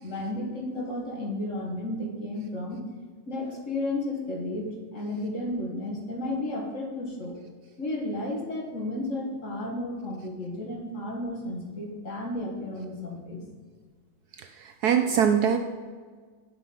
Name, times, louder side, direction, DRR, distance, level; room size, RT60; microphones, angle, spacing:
voice 1, 0.0-2.8 3.3-7.4 7.8-13.4, left 1 dB, 45° left, 1 dB, 1.9 m, -33 dB
voice 2, 14.6-15.6, right 8 dB, 70° right, 7 dB, 1.0 m, -22 dB
11.5 x 5.6 x 5.5 m, 1.5 s
omnidirectional pair, 2.0 m